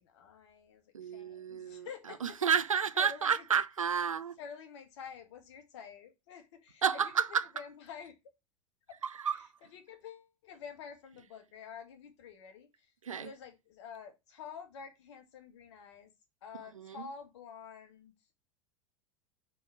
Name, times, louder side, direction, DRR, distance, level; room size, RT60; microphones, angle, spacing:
voice 1, 0.0-2.4 2.9-3.3 4.4-7.1 7.5-8.2 8.9-9.0 9.7-12.9 13.2-16.1 16.4-18.1, left 6 dB, 60° left, 1.7 m, -49 dB
voice 2, 0.9-4.4 6.8-7.5 9.0-9.5 13.0-13.3 16.7-17.1, right 7 dB, 80° right, 0.5 m, -31 dB
4.6 x 3.8 x 5.6 m
figure-of-eight pair, 85°, 17 cm